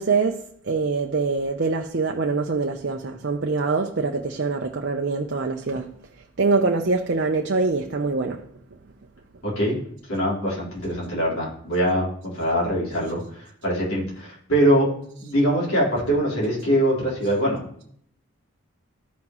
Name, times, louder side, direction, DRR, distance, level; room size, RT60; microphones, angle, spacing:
voice 1, 0.0-5.9 6.4-8.4, right 4 dB, 50° right, 0.6 m, -24 dB
voice 2, 9.4-9.8 10.1-14.9 15.2-17.8, equal, 75° left, 3.8 m, -23 dB
14.5 x 5.7 x 3.0 m
head